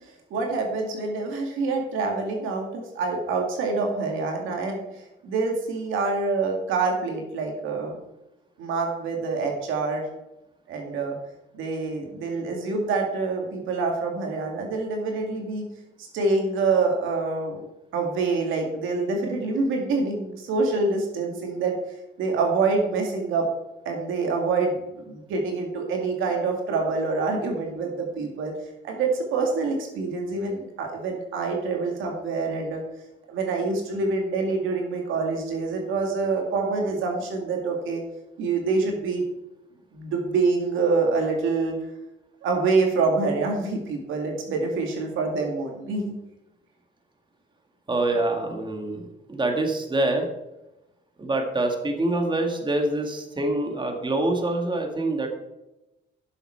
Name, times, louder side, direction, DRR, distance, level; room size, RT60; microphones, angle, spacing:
voice 1, 0.3-8.0 8.6-10.0 10.7-11.2 11.5-15.7 16.0-17.6 17.9-21.8 22.2-23.5 23.8-28.5 28.8-32.8 33.3-38.0 38.4-39.2 39.9-41.8 42.4-46.1, right 3 dB, 90° right, 2 dB, 2.1 m, -26 dB
voice 2, 47.9-50.3 51.2-55.3, right 2 dB, 25° right, 3 dB, 1.9 m, -25 dB
11.0 x 7.0 x 4.4 m, 0.95 s
cardioid pair, 90°, 20 cm